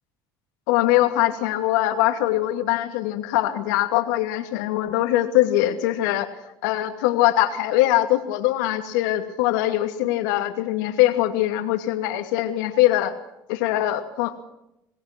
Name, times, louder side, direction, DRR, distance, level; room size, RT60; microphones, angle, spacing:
voice 1, 0.7-6.3 6.6-13.1 13.5-14.4, left 14 dB, 80° left, 7 dB, 2.6 m, -22 dB
28.0 x 18.5 x 6.1 m, 0.85 s
supercardioid pair, 80°, 10 cm